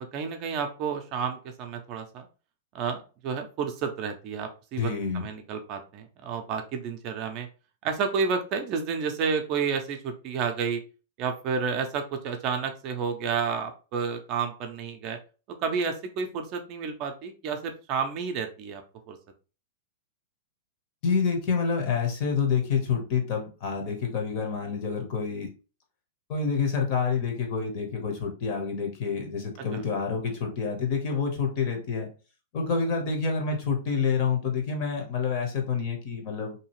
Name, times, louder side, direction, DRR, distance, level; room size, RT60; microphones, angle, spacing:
voice 1, 0.0-2.3 2.7-7.5 7.8-10.8 11.2-15.2 15.6-18.8 19.1-19.2 29.7-29.8, right 6 dB, 35° right, 5 dB, 0.5 m, -30 dB
voice 2, 4.8-5.3 21.0-25.5 26.3-32.1 32.5-36.5, left 5 dB, 40° left, 3 dB, 0.8 m, -28 dB
2.7 x 2.4 x 3.0 m, 0.34 s
supercardioid pair, 155°, 0 cm